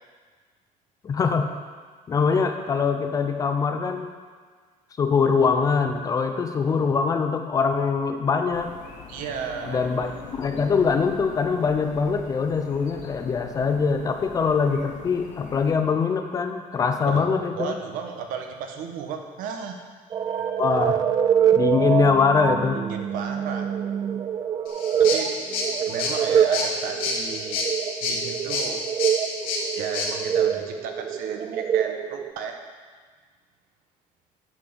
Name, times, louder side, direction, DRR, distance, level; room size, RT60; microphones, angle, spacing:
voice 1, 1.0-1.5 2.1-4.1 5.0-8.7 9.7-17.8 20.6-21.0 21.5-22.8, left 5 dB, 25° left, 7 dB, 0.6 m, -23 dB
sound 1, 8.5-15.7, left 4 dB, 60° left, 1.3 m, -43 dB
voice 2, 9.1-9.9 17.1-17.3 17.6-19.8 20.1-20.6 22.7-23.7 25.0-25.3 25.9-27.7 28.0-28.8 29.7-32.6, right 6 dB, 75° right, 4 dB, 1.2 m, -34 dB
sound 2, 20.1-32.3, right 8 dB, 25° right, 0.4 m, -25 dB
sound 3, 24.7-30.1, left 3 dB, 85° left, 2.5 m, -29 dB
9.6 x 5.9 x 6.8 m, 1.5 s
cardioid pair, 175°, 15 cm